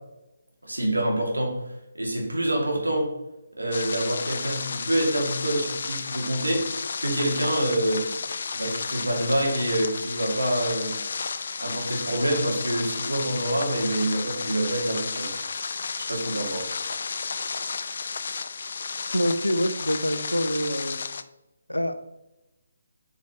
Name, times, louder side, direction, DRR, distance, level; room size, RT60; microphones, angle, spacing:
voice 1, 0.6-1.6 1.9-3.1 3.6-6.7 7.0-8.0 8.5-10.9 11.6-15.3 16.0-16.7, right 1 dB, 80° right, -1 dB, 2.3 m, -26 dB
sound 1, 3.7-21.2, left 5 dB, 50° left, 0.4 m, -32 dB
voice 2, 19.1-21.0 21.7-21.9, equal, 90° left, 9 dB, 0.7 m, -25 dB
8.2 x 4.9 x 3.0 m, 0.94 s
figure-of-eight pair, 145°, 0 cm